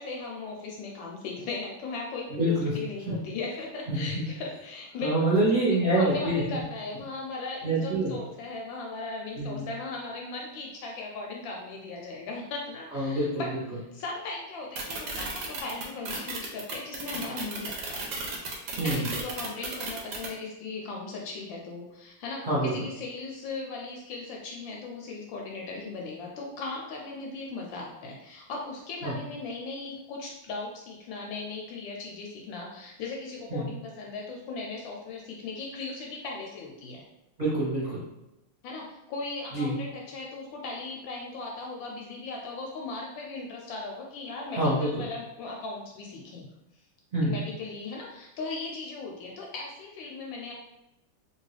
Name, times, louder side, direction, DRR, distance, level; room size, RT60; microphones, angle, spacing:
voice 1, 0.0-5.3 5.7-18.1 18.8-37.0 38.6-46.5 47.2-50.5, left 3 dB, 75° left, -1 dB, 1.2 m, -38 dB
voice 2, 2.3-2.7 3.9-4.2 5.0-6.6 7.6-8.2 9.4-9.6 12.9-13.4 18.8-19.1 22.4-22.8 29.0-29.2 33.5-33.6 37.4-38.0 39.5-39.7 44.5-45.0 47.1-47.4, right 1 dB, 35° right, -10 dB, 0.8 m, -26 dB
sound 1, 14.8-20.3, right 3 dB, 65° right, 1.1 m, -34 dB
3.0 x 2.8 x 3.2 m, 0.92 s
omnidirectional pair, 2.3 m